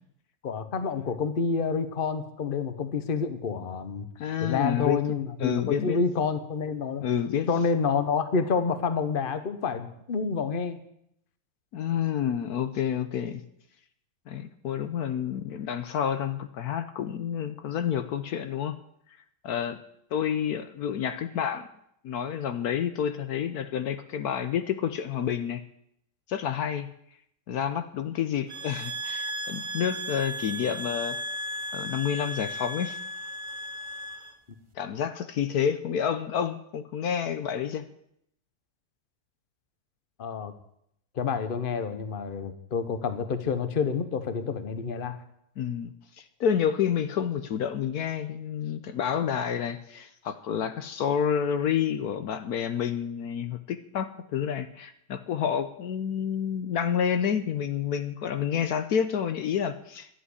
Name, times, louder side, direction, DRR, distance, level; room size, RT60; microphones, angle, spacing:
voice 1, 0.4-4.1 4.4-7.0 7.5-10.8 40.2-40.5 41.1-45.2, left 5 dB, 35° left, 10 dB, 1.1 m, -28 dB
voice 2, 4.2-5.0 5.4-6.0 7.0-7.5 11.7-13.4 14.3-18.8 19.4-19.8 20.1-21.7 22.0-25.6 26.3-26.9 27.5-31.2 31.7-33.0 34.8-37.9 45.6-60.1, left 8 dB, 70° left, 10 dB, 1.2 m, -29 dB
sound 1, 28.5-34.3, equal, 30° right, 0.5 m, -35 dB
11.5 x 7.8 x 9.8 m, 0.73 s
omnidirectional pair, 1.8 m